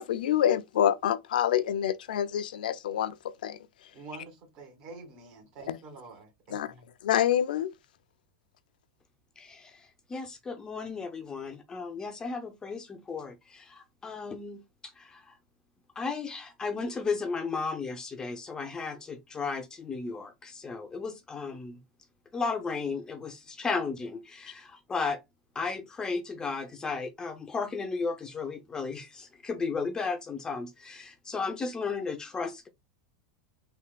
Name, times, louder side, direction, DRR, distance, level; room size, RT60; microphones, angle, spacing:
voice 1, 0.0-3.1 3.4-3.6 5.7-5.8 6.5-6.7 7.0-7.7, left 10 dB, 85° left, 0.4 m, -26 dB
voice 2, 3.9-6.9, right 3 dB, 50° right, 1.9 m, -47 dB
voice 3, 9.4-15.3 16.0-21.8 22.3-25.2 25.6-32.7, left 4 dB, 15° left, 0.5 m, -34 dB
3.4 x 2.7 x 2.2 m
supercardioid pair, 135°, 5 cm